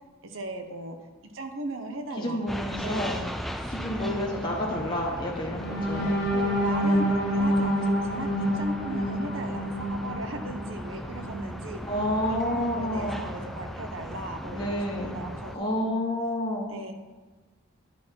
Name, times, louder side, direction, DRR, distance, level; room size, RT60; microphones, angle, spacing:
voice 1, 0.2-1.0 1.2-2.4 2.7-3.3 3.6-4.2 6.3-11.8 12.2-15.8 16.7-16.9, right 2 dB, 70° right, 5 dB, 0.9 m, -37 dB
voice 2, 2.2-3.2 3.7-6.1 11.8-13.2 14.4-15.1 15.5-16.7, left 1 dB, 20° left, -3 dB, 1.0 m, -29 dB
sound 1, 2.5-15.6, equal, ahead, 0.3 m, -38 dB
sound 2, 5.6-11.5 12.0-12.2 12.5-12.8, equal, 50° left, 1.2 m, -27 dB
10.0 x 4.5 x 4.5 m, 1.3 s
head